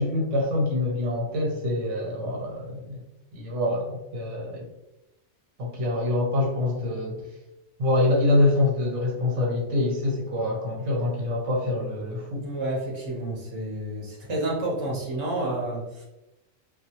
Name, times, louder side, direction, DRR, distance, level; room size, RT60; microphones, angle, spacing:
voice 1, 0.0-3.0 3.3-4.7 5.6-7.2 7.8-12.5, left 2 dB, 85° right, -2 dB, 1.1 m, -25 dB
voice 2, 12.3-16.0, right 1 dB, 30° right, -3 dB, 0.7 m, -30 dB
2.2 x 2.2 x 2.8 m, 0.93 s
omnidirectional pair, 1.2 m